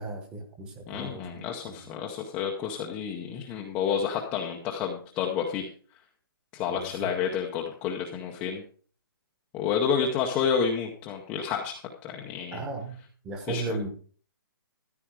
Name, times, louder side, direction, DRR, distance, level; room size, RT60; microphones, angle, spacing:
voice 1, 0.0-1.8 6.7-7.1 12.5-13.0 13.2-13.9, right 3 dB, 10° right, 6 dB, 1.1 m, -36 dB
voice 2, 0.9-5.7 6.5-8.6 9.5-12.6 13.5-13.6, left 7 dB, 10° left, 0 dB, 0.7 m, -30 dB
14.0 x 9.2 x 4.7 m, 0.42 s
hypercardioid pair, 180°, 12 cm